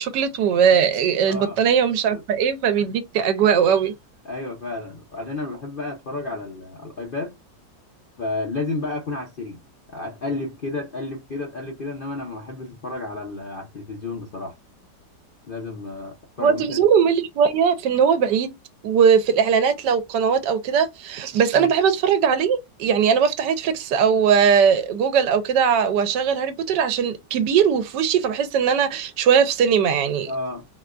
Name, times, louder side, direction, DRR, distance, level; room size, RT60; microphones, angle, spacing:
voice 1, 0.0-3.9 16.4-18.5 18.8-30.3, right 7 dB, 80° right, 1.2 m, -20 dB
voice 2, 1.3-1.6 2.1-2.2 4.2-7.3 8.2-9.6 9.9-14.6 15.5-16.8 21.5-21.7 30.3-30.7, left 2 dB, 60° left, 0.5 m, -31 dB
4.1 x 2.2 x 2.4 m
omnidirectional pair, 1.9 m